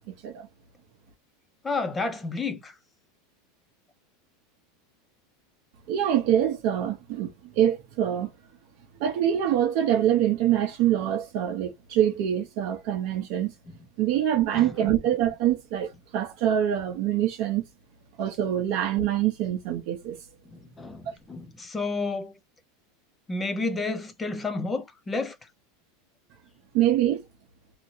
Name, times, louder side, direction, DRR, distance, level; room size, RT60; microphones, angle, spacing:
voice 1, 1.6-2.7 14.5-14.9 20.5-22.3 23.3-25.4, left 3 dB, 10° left, 0.4 m, -31 dB
voice 2, 5.9-8.3 9.0-13.5 14.0-17.6 18.2-20.2 21.1-21.2 26.7-27.2, right 11 dB, 40° right, 0.7 m, -25 dB
2.8 x 2.7 x 2.6 m
supercardioid pair, 175°, 0 cm